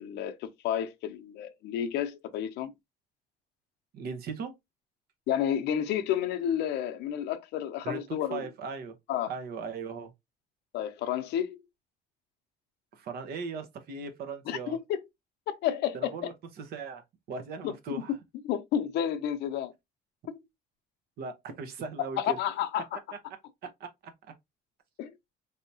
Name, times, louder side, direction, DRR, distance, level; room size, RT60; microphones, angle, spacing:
voice 1, 0.0-2.7 5.3-8.5 9.1-9.3 10.7-11.6 14.5-15.0 15.5-16.1 17.6-18.2 18.4-19.7 20.3-20.4 22.0-23.0 25.0-25.1, left 10 dB, 80° left, 0.6 m, -31 dB
voice 2, 3.9-4.5 7.8-9.0 9.3-10.1 12.9-14.8 15.9-18.1 21.2-22.4 23.8-24.1, right 4 dB, 65° right, 0.9 m, -38 dB
3.4 x 2.7 x 2.7 m
cardioid pair, 110°, 17 cm